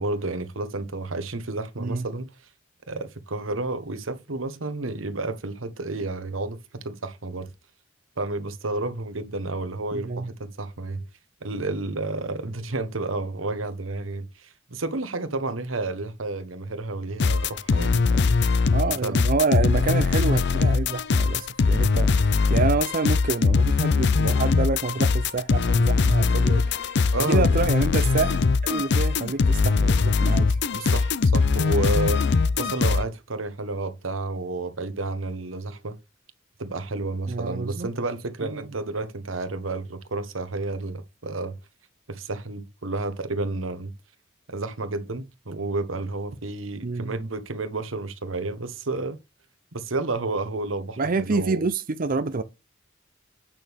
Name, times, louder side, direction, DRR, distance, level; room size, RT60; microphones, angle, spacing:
voice 1, 0.0-2.3 2.9-7.5 8.2-11.0 11.4-18.3 18.8-19.2 27.1-27.6 30.7-36.0 36.6-41.6 42.1-43.9 44.5-49.2 49.7-51.6, right 2 dB, 90° right, 1.3 m, -31 dB
voice 2, 9.9-10.3 18.7-30.6 37.3-37.9 38.4-38.7 46.8-47.1 51.0-52.4, right 4 dB, 45° right, 0.6 m, -27 dB
sound 1, 17.2-33.0, left 4 dB, 60° left, 0.5 m, -21 dB
8.9 x 6.2 x 3.6 m
head